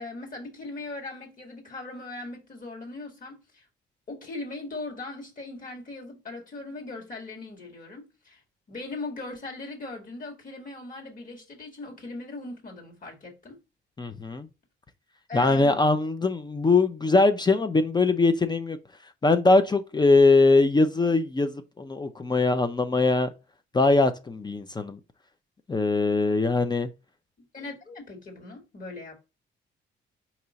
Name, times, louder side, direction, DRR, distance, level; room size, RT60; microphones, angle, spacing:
voice 1, 0.0-3.7 4.1-8.4 8.7-13.6 15.3-15.8 27.5-29.2, left 3 dB, 45° left, 1.8 m, -39 dB
voice 2, 14.0-14.5 15.3-18.8 19.2-23.3 23.7-25.0 25.7-26.9, left 3 dB, 20° left, 0.5 m, -22 dB
4.5 x 2.9 x 3.9 m
cardioid pair, 90°, 20 cm